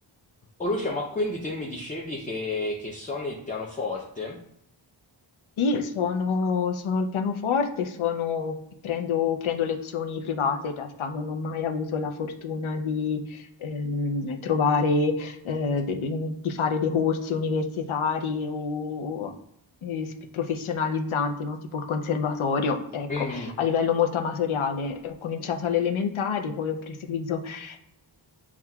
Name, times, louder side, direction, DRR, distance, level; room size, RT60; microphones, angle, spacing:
voice 1, 0.6-4.4 23.1-23.5, left 2 dB, 20° left, -1 dB, 0.5 m, -30 dB
voice 2, 5.6-8.5 8.8-19.3 19.8-27.8, left 5 dB, 85° left, 5 dB, 0.6 m, -27 dB
7.1 x 2.4 x 2.2 m, 0.78 s
wide cardioid pair, 100°, 47 cm